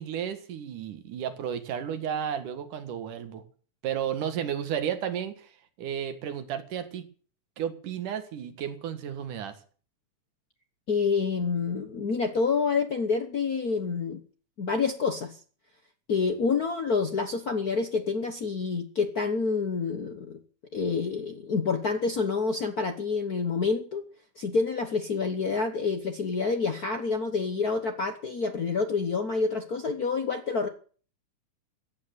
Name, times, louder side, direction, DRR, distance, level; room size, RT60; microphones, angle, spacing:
voice 1, 0.0-3.4 3.8-7.0 7.6-9.6, right 9 dB, 85° right, 9 dB, 3.1 m, -33 dB
voice 2, 10.9-14.2 14.6-15.4 16.1-20.4 20.7-24.0 24.4-30.7, left 4 dB, 80° left, 7 dB, 0.8 m, -28 dB
15.5 x 9.2 x 9.4 m, 0.43 s
omnidirectional pair, 3.6 m